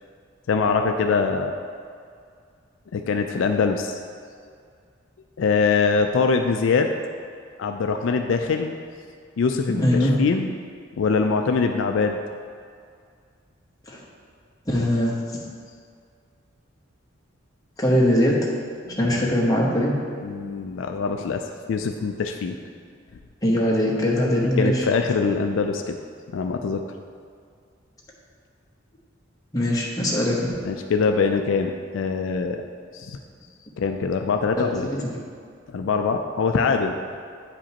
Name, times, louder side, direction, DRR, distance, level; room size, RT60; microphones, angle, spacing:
voice 1, 0.5-1.5 2.9-3.9 5.4-7.0 7.6-8.7 9.4-10.5 10.9-12.2 19.0-19.3 20.2-21.4 21.7-22.6 24.6-26.0 26.3-26.8 30.6-32.6 32.9-33.2 33.8-34.9 35.7-37.0, left 5 dB, 70° left, 5 dB, 0.4 m, -23 dB
voice 2, 9.7-10.1 13.9-14.0 14.7-15.2 17.8-18.5 19.0-19.9 23.4-24.8 29.5-30.5 34.8-35.0, equal, 20° left, -4 dB, 1.0 m, -21 dB
9.3 x 5.0 x 2.9 m, 2.2 s
head